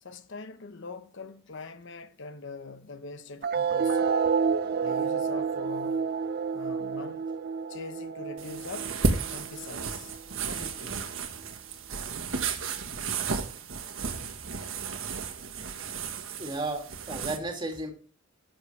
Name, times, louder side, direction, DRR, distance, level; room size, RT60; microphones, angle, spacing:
voice 1, 0.0-4.1 4.8-6.2 6.5-7.3 7.7-9.0 9.3-11.0, left 3 dB, 65° left, 1.0 m, -43 dB
sound 1, 3.4-10.4, right 6 dB, 50° right, 0.5 m, -29 dB
sound 2, 8.4-17.4, right 4 dB, 80° right, 1.4 m, -33 dB
voice 2, 16.4-17.9, right 2 dB, 25° right, 2.5 m, -33 dB
10.0 x 7.5 x 3.3 m
head